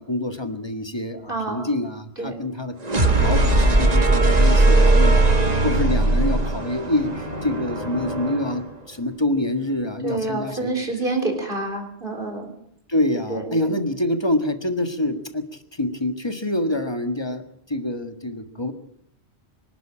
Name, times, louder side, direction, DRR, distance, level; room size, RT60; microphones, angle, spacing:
voice 1, 0.0-2.7 3.2-5.4 5.6-10.8 12.9-18.7, left 1 dB, 25° left, 7 dB, 1.7 m, -26 dB
voice 2, 1.3-1.7 2.2-2.4 10.0-12.5 13.3-13.7, right 2 dB, 55° right, 5 dB, 4.3 m, -27 dB
sound 1, 2.8-8.7, right 2 dB, 40° right, 1.8 m, -19 dB
25.0 x 12.0 x 8.8 m, 0.71 s
omnidirectional pair, 1.1 m